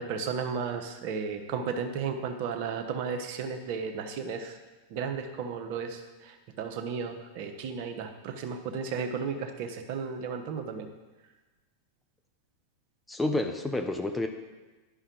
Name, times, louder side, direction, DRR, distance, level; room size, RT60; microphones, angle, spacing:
voice 1, 0.0-4.6 4.9-10.9, right 6 dB, 55° right, 5 dB, 1.0 m, -34 dB
voice 2, 13.1-14.3, left 2 dB, 10° left, 5 dB, 0.7 m, -29 dB
11.0 x 5.4 x 3.9 m, 1.2 s
hypercardioid pair, 105°, 0 cm